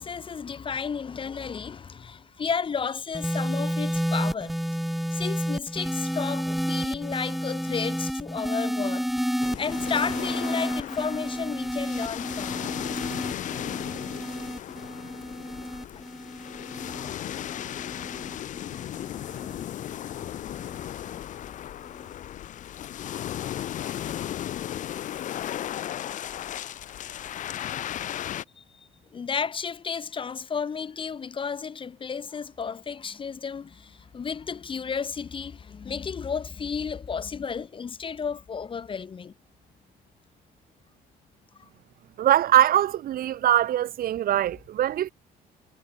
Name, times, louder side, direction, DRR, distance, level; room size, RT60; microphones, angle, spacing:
voice 1, 0.0-4.6 5.1-9.1 9.6-12.7 15.9-16.0 17.5-17.7 18.9-19.5 28.6-39.3 41.6-41.7, left 6 dB, 30° left, 1.0 m, -33 dB
sound 1, 3.1-19.6 20.5-20.9, equal, ahead, 0.4 m, -31 dB
sound 2, 9.4-28.4, left 11 dB, 50° left, 0.5 m, -35 dB
voice 2, 42.2-45.1, right 12 dB, 60° right, 1.4 m, -22 dB
cardioid pair, 110°, 17 cm